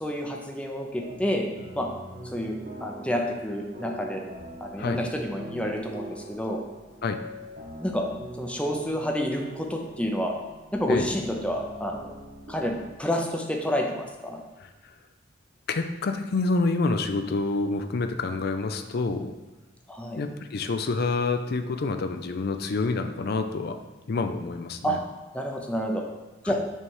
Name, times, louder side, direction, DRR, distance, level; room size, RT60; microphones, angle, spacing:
voice 1, 0.0-1.5 1.7-1.9 2.3-4.2 4.6-6.6 7.8-8.0 8.4-10.3 10.7-12.1 12.5-14.4 19.9-20.2 24.8-25.0 25.3-26.0 26.4-26.6, equal, 5° left, 1 dB, 0.6 m, -29 dB
sound 1, 0.9-13.0, right 1 dB, 50° right, 1.2 m, -42 dB
voice 2, 15.7-19.3 20.2-23.8 24.1-25.0 26.4-26.5, left 3 dB, 55° left, 7 dB, 0.4 m, -27 dB
5.4 x 3.3 x 5.5 m, 1.2 s
head